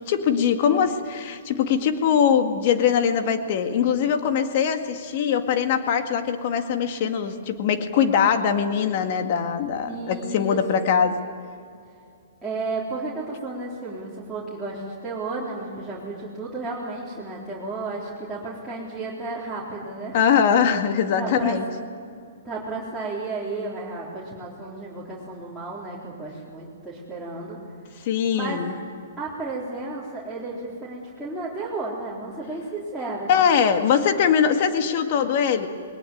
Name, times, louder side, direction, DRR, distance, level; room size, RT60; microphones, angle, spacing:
voice 1, 0.1-11.2 20.1-21.6 28.0-28.7 33.3-35.7, left 7 dB, 50° left, 7 dB, 2.0 m, -22 dB
voice 2, 9.9-10.9 12.4-20.4 21.2-21.6 22.4-27.6 28.3-28.6 29.2-33.3 35.2-35.3, right 3 dB, 5° right, -9 dB, 3.9 m, -33 dB
20.5 x 19.5 x 9.3 m, 2.3 s
hypercardioid pair, 130°, 0 cm